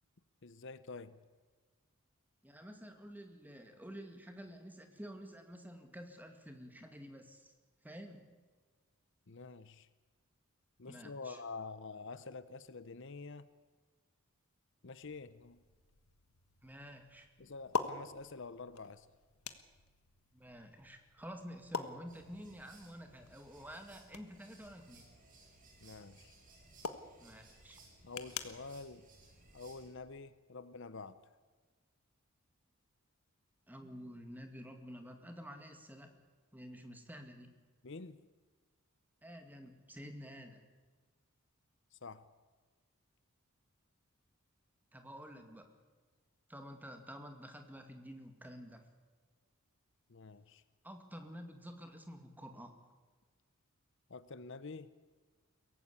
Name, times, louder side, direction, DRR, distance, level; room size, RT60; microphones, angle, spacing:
voice 1, 0.4-1.2 9.3-9.9 10.8-13.5 14.8-15.6 17.4-19.1 25.8-26.3 28.0-29.0 29.5-31.3 37.8-38.2 41.9-42.3 50.1-50.6 54.1-54.9, left 4 dB, 55° left, 14 dB, 0.8 m, -47 dB
voice 2, 2.4-7.5 7.8-8.3 10.9-11.4 16.6-17.3 20.3-25.1 27.2-27.8 33.7-36.2 36.5-37.5 39.2-40.6 44.9-45.7 46.5-48.9 50.8-52.8, equal, 10° right, 5 dB, 2.1 m, -50 dB
sound 1, 15.0-30.2, left 4 dB, 85° left, 1.4 m, -47 dB
sound 2, 22.1-29.9, right 2 dB, 35° right, 5.2 m, -61 dB
22.5 x 17.5 x 8.4 m, 1.4 s
head